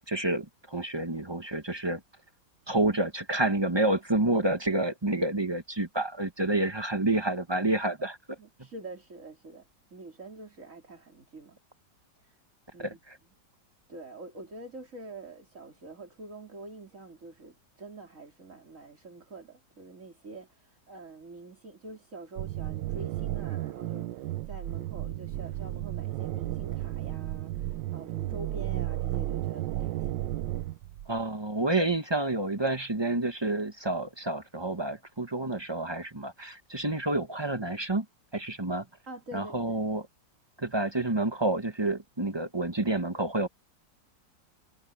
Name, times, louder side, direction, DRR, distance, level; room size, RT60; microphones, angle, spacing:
voice 1, 0.1-2.0 2.7-8.2 12.8-13.2 31.1-38.0 38.3-38.9 39.3-40.1 40.6-43.5, right 2 dB, 20° right, 1.0 m, -29 dB
voice 2, 8.4-9.7 9.9-11.6 12.2-12.3 12.7-13.0 13.9-30.2 39.1-39.9, right 2 dB, 45° right, 4.2 m, -46 dB
sound 1, 22.4-31.2, right 14 dB, 90° right, 1.4 m, -33 dB
omnidirectional pair, 1.9 m